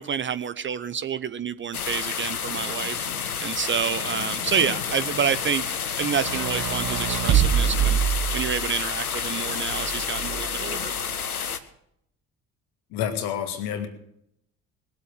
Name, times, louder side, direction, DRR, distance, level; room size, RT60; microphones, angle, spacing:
voice 1, 0.0-3.1 3.4-5.6 6.0-8.0 8.3-10.9, right 7 dB, 30° right, 14 dB, 0.6 m, -28 dB
sound 1, 1.7-11.6, left 7 dB, 90° left, 0.7 m, -30 dB
sound 2, 6.1-8.8 9.7-10.7, right 9 dB, 45° right, 1.3 m, -25 dB
voice 2, 12.9-13.9, left 9 dB, 60° left, 7 dB, 1.9 m, -28 dB
20.5 x 7.8 x 6.6 m, 0.75 s
figure-of-eight pair, 50°, 43 cm